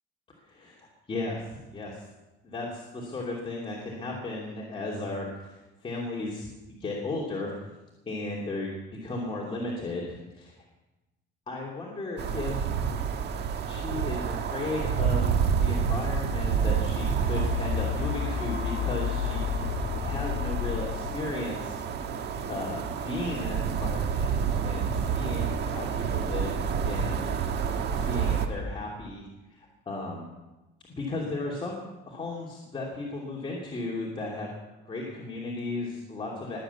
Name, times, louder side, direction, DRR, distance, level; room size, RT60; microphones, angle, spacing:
voice 1, 0.4-2.0 2.4-7.5 8.1-8.7 9.0-10.5 11.5-12.6 13.7-19.5 20.0-22.0 22.5-26.6 26.8-27.3 27.9-30.3 31.0-34.5 34.9-36.6, left 2 dB, 25° left, -3 dB, 2.8 m, -35 dB
sound 1, 12.2-28.5, right 6 dB, 55° right, 1.5 m, -29 dB
sound 2, 16.6-24.6 25.2-25.3, left 9 dB, 65° left, 1.8 m, -33 dB
21.5 x 7.7 x 8.3 m, 1.1 s
cardioid pair, 150°, 21 cm